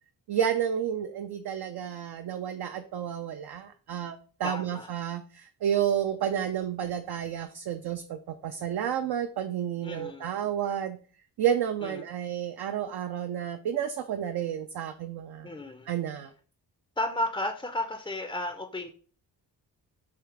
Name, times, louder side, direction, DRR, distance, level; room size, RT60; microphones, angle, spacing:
voice 1, 0.3-11.0 11.4-15.5 15.9-16.3, right 9 dB, 65° right, 7 dB, 0.5 m, -31 dB
voice 2, 4.4-4.9 9.8-10.3 11.8-12.0 15.4-15.9 17.0-18.9, left 1 dB, 10° left, 4 dB, 0.4 m, -33 dB
3.5 x 2.8 x 4.6 m, 0.43 s
cardioid pair, 80°, 41 cm